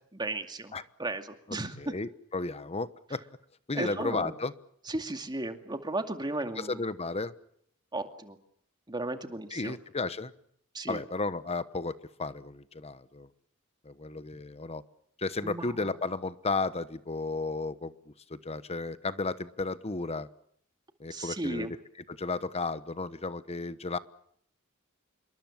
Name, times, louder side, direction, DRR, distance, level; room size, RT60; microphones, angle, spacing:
voice 1, 0.1-0.7 1.0-1.8 3.7-4.3 4.9-6.8 7.9-8.4 8.9-9.8 10.7-11.0 15.4-15.8 21.1-21.7, right 2 dB, 20° right, 6 dB, 2.4 m, -35 dB
voice 2, 1.5-3.2 3.7-4.5 6.6-7.3 9.5-10.3 10.9-11.9 12.2-13.3 13.8-14.8 15.2-20.3 21.0-21.8 22.1-24.0, left 3 dB, 30° left, 14 dB, 1.1 m, -33 dB
27.5 x 23.0 x 7.3 m, 0.68 s
head